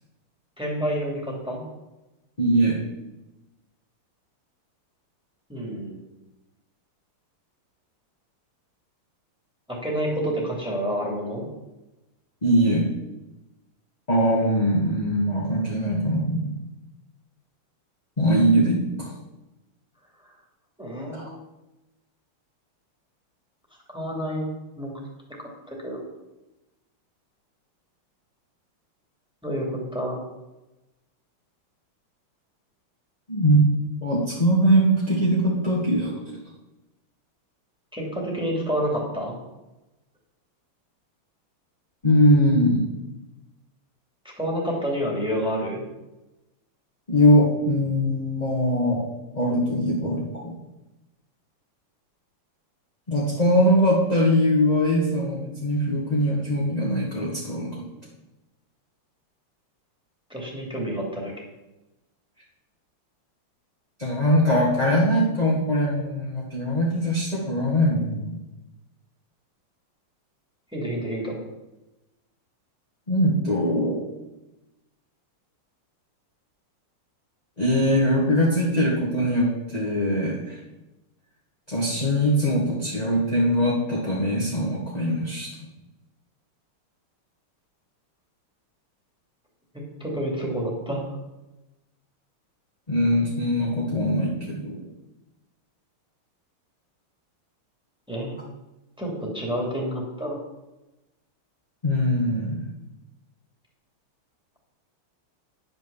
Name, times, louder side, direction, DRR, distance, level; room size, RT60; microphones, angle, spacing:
voice 1, 0.6-1.6 5.5-6.0 9.7-11.4 20.2-20.3 20.8-21.3 23.9-24.4 24.8-24.9 25.4-26.0 29.4-30.2 37.9-39.3 44.2-45.8 60.3-61.3 70.7-71.4 89.7-91.0 98.1-98.3 99.0-100.4, equal, ahead, -2 dB, 2.7 m, -29 dB
voice 2, 2.4-2.8 12.4-12.9 14.1-16.5 18.2-19.1 21.1-21.2 33.3-33.7 34.0-36.1 42.0-42.9 47.1-49.0 49.3-50.5 53.1-57.7 64.0-68.3 73.1-74.0 77.6-80.6 81.7-85.5 92.9-94.9 101.8-102.6, equal, 20° left, -5 dB, 1.9 m, -21 dB
10.5 x 6.4 x 7.2 m, 1.0 s
omnidirectional pair, 2.4 m